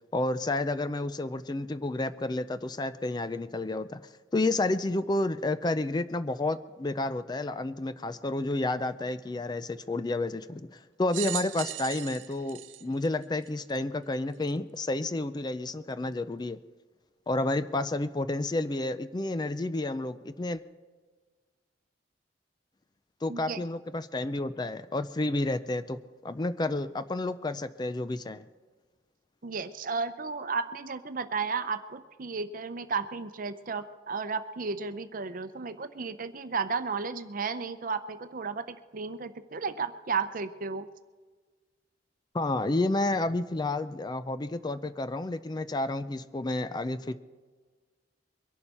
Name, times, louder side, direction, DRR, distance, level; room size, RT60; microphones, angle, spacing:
voice 1, 0.1-16.6 17.3-20.6 23.2-28.5 42.3-47.2, left 2 dB, 20° left, 13 dB, 0.4 m, -30 dB
sound 1, 11.1-13.8 14.5-14.6 15.7-15.8, right 15 dB, 80° right, 0.4 m, -38 dB
voice 2, 23.3-23.6 29.4-40.9, right 4 dB, 45° right, 11 dB, 0.7 m, -33 dB
23.0 x 11.5 x 4.3 m, 1.4 s
head